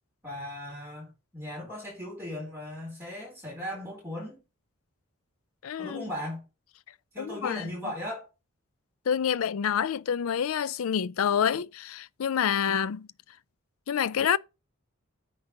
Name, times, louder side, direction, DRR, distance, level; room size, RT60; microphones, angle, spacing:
voice 1, 0.2-4.4 5.8-6.4 7.1-8.3, left 1 dB, 10° right, 4.3 m, -37 dB
voice 2, 5.6-6.1 7.2-7.7 9.1-13.1 13.9-14.4, left 8 dB, 75° left, 0.4 m, -27 dB
9.6 x 4.0 x 5.8 m
head